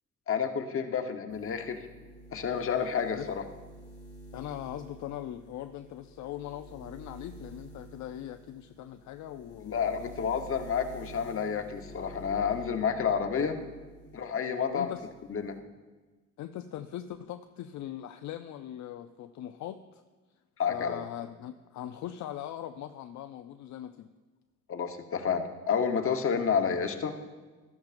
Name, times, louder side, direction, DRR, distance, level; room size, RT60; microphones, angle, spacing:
voice 1, 0.3-1.8 2.3-3.4 9.6-13.6 14.1-14.9 15.3-15.5 20.6-21.0 24.7-27.1, left 6 dB, 45° left, 6 dB, 1.1 m, -30 dB
sound 1, 1.3-14.3 14.6-15.6, right 1 dB, 20° left, 1.8 m, -50 dB
voice 2, 4.3-10.5 13.3-13.5 14.7-15.1 16.4-20.0 20.7-24.1, left 11 dB, 65° left, 8 dB, 0.5 m, -41 dB
13.0 x 11.5 x 2.5 m, 1.3 s
cardioid pair, 90°, 30 cm